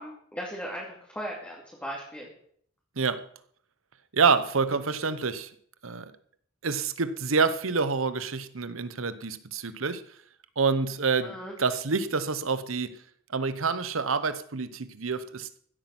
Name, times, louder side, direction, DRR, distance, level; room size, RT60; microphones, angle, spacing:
voice 1, 0.0-2.3 11.2-11.5, equal, 5° left, -4 dB, 2.7 m, -37 dB
voice 2, 4.1-5.5 5.8-6.1 6.6-10.0 10.6-13.0 13.3-15.5, right 5 dB, 90° right, 13 dB, 1.0 m, -27 dB
15.5 x 8.9 x 6.1 m, 0.63 s
head